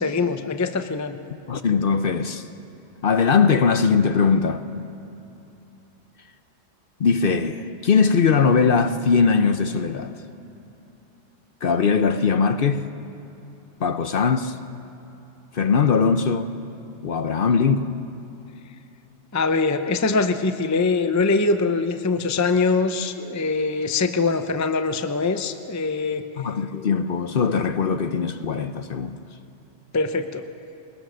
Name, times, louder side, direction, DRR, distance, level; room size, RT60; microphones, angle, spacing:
voice 1, 0.0-1.2 19.3-26.2 29.9-30.4, left 4 dB, 20° left, 0.5 m, -23 dB
voice 2, 1.5-2.5 3.0-4.6 7.0-10.1 11.6-12.8 13.8-14.6 15.5-16.5 17.0-17.9 26.4-29.2, left 5 dB, 55° left, 0.8 m, -20 dB
21.5 x 20.5 x 6.3 m
omnidirectional pair, 1.3 m